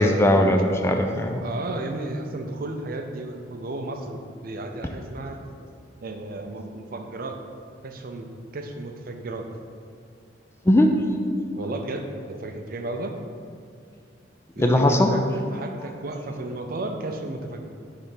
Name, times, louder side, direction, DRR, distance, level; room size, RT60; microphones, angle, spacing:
voice 1, 0.0-1.4 10.7-11.0 14.6-15.1, left 1 dB, 15° left, 4 dB, 0.3 m, -19 dB
voice 2, 1.4-5.4 6.0-7.4 7.8-9.5 11.6-13.2 14.6-17.6, right 2 dB, 50° right, 4 dB, 0.6 m, -33 dB
6.6 x 3.4 x 5.8 m, 2.2 s
head